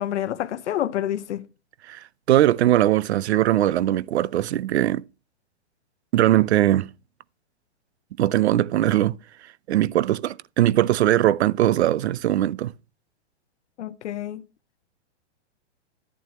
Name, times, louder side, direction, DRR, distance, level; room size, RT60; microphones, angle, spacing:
voice 1, 0.0-1.4 13.8-14.4, left 11 dB, 85° left, 0.7 m, -28 dB
voice 2, 1.9-5.0 6.1-6.9 8.2-9.2 9.7-12.7, right 13 dB, 70° right, 0.5 m, -20 dB
11.0 x 9.2 x 3.0 m
hypercardioid pair, 170°, 34 cm